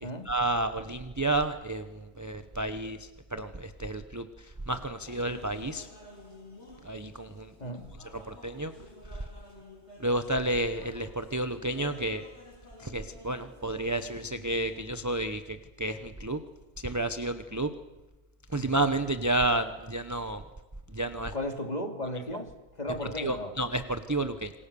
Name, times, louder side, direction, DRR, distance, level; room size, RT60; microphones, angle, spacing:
voice 1, 0.3-3.0 3.3-4.3 4.7-5.9 6.8-7.5 8.3-8.7 10.0-12.2 12.8-16.4 16.8-17.7 18.5-20.4 20.9-21.3 23.2-24.5, right 1 dB, 15° right, 8 dB, 0.7 m, -31 dB
sound 1, 5.0-15.5, left 1 dB, 45° left, 4.8 m, -52 dB
voice 2, 21.3-22.5 22.8-23.5, left 1 dB, 25° left, 4 dB, 2.7 m, -34 dB
27.5 x 21.5 x 6.9 m, 1.1 s
omnidirectional pair, 1.6 m